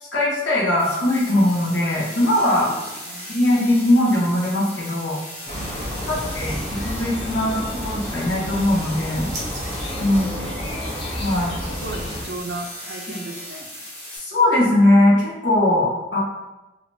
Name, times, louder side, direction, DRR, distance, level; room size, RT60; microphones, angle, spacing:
voice 1, 0.0-2.7 3.3-5.2 6.1-9.3 10.0-10.3 11.2-11.6 14.1-16.2, left 1 dB, 75° left, -6 dB, 1.1 m, -20 dB
sound 1, 0.8-14.2, left 1 dB, 45° left, 1.3 m, -37 dB
voice 2, 2.5-3.3 5.5-6.4 10.1-11.0 11.6-13.7, right 2 dB, 65° right, 3 dB, 0.4 m, -37 dB
sound 2, 5.5-12.2, equal, 30° left, 0.9 m, -30 dB
sound 3, 8.2-11.0, right 1 dB, 20° right, 0.7 m, -42 dB
3.2 x 2.9 x 2.6 m, 1.0 s
head